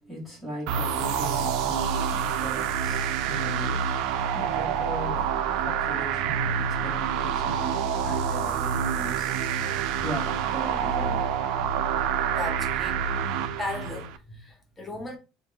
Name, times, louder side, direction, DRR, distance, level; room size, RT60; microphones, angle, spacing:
voice 1, 0.0-9.4 10.0-11.3, equal, 5° right, 1.6 m, -39 dB
sound 1, 0.7-14.2, right 7 dB, 60° right, 0.4 m, -27 dB
voice 2, 12.3-13.0 13.6-15.2, left 2 dB, 10° left, 0.9 m, -36 dB
3.4 x 2.6 x 3.4 m
cardioid pair, 165°, 0 cm